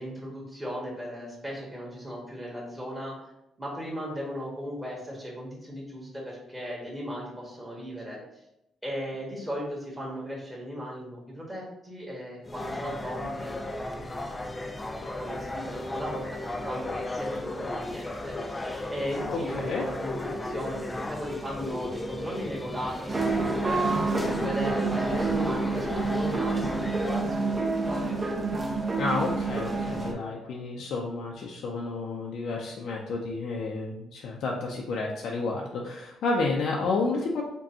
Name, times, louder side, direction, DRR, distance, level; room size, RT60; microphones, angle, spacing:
voice 1, 0.0-3.1 3.6-8.2 8.8-13.5 15.2-23.9 24.3-28.2, equal, 10° right, -4 dB, 1.5 m, -37 dB
sound 1, 12.4-27.2, left 2 dB, 20° left, 0.4 m, -35 dB
voice 2, 19.3-19.8 24.2-24.5 29.0-37.4, left 3 dB, 70° left, -2 dB, 0.5 m, -31 dB
sound 2, 23.1-30.1, right 3 dB, 30° right, 0.7 m, -28 dB
5.1 x 2.3 x 2.7 m, 0.85 s
cardioid pair, 90°, 0 cm